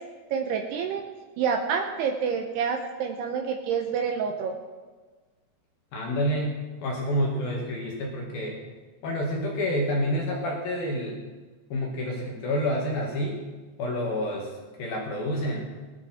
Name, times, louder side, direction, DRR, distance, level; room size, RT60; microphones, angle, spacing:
voice 1, 0.3-1.0 1.4-4.5, right 6 dB, 85° right, 4 dB, 2.3 m, -28 dB
voice 2, 5.9-8.6 9.0-11.2 11.7-13.4 13.8-14.5 14.8-15.7, equal, 60° left, -1 dB, 3.0 m, -28 dB
19.0 x 11.5 x 4.3 m, 1.4 s
omnidirectional pair, 5.9 m